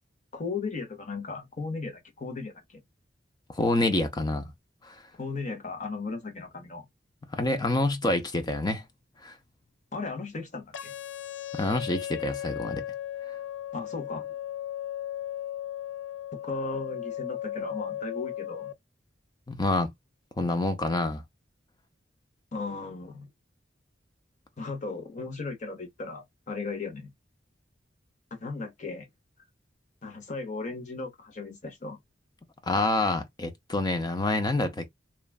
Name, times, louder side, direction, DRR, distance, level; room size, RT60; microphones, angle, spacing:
voice 1, 0.3-2.8 5.2-6.8 9.9-10.9 13.7-14.3 16.4-18.7 22.5-23.3 24.6-27.1 28.3-29.1 30.0-32.0, left 3 dB, 45° left, 0.9 m, -36 dB
voice 2, 3.5-4.5 4.8-4.9 7.3-8.8 9.2-9.3 11.5-12.8 19.5-19.9 20.4-21.2 32.6-34.9, left 2 dB, 25° left, 0.6 m, -27 dB
sound 1, 10.7-18.7, left 11 dB, 85° left, 0.4 m, -36 dB
3.1 x 2.2 x 2.3 m
head